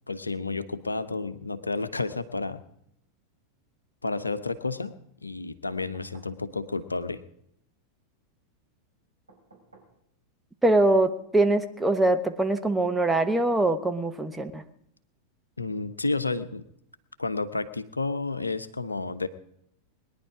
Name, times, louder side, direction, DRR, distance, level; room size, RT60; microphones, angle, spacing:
voice 1, 0.1-2.6 4.0-4.9 5.2-7.2 15.6-16.6 17.2-19.3, left 3 dB, 80° left, 12 dB, 0.9 m, -31 dB
sound 1, 5.7-6.4 9.3-10.0 11.6-11.7, right 3 dB, 80° right, 4.5 m, -55 dB
voice 2, 10.6-14.6, right 2 dB, 5° right, 6 dB, 1.1 m, -23 dB
21.5 x 10.5 x 5.0 m, 0.74 s
figure-of-eight pair, 90°, 0 cm